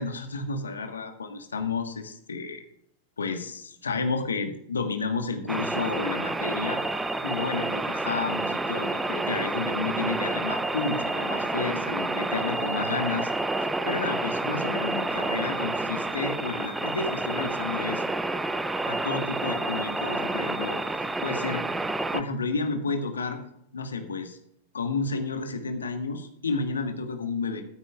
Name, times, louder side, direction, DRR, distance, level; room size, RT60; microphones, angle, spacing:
voice 1, 0.0-2.6 3.2-6.8 7.2-13.3 13.9-18.0 18.8-21.7 22.1-23.4 23.7-24.4 24.7-27.6, left 4 dB, 70° left, 5 dB, 1.5 m, -31 dB
sound 1, 5.5-22.2, right 2 dB, 5° right, 0.7 m, -29 dB
15.0 x 13.0 x 2.5 m, 0.74 s
figure-of-eight pair, 90°, 0 cm